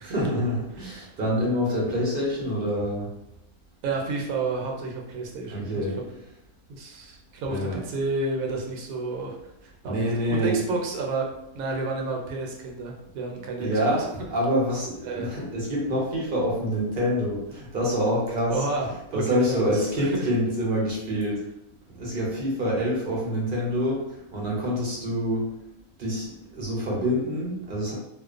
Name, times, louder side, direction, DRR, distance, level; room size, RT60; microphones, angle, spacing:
voice 1, 0.0-3.1 5.5-5.9 7.5-7.8 9.8-10.6 13.6-18.6 19.1-21.4 21.9-24.0 24.3-25.5 26.0-26.3 26.5-27.9, equal, 50° right, -4 dB, 0.7 m, -26 dB
voice 2, 3.8-6.2 6.7-9.4 9.6-11.3 11.5-13.9 15.0-15.3 18.5-20.3, right 3 dB, 75° right, 0 dB, 1.0 m, -31 dB
2.5 x 2.1 x 2.4 m, 0.83 s
omnidirectional pair, 1.6 m